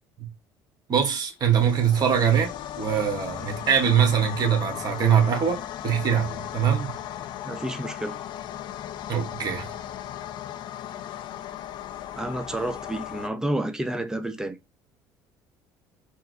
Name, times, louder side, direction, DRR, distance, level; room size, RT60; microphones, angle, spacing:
voice 1, 0.9-2.5 2.8-6.9 9.1-9.7, right 8 dB, 45° right, 1.3 m, -23 dB
sound 1, 1.4-13.3, left 11 dB, 60° left, 0.4 m, -36 dB
voice 2, 7.4-8.2 12.2-14.6, right 1 dB, 5° right, 0.6 m, -30 dB
4.5 x 2.0 x 2.6 m
supercardioid pair, 90°, 9 cm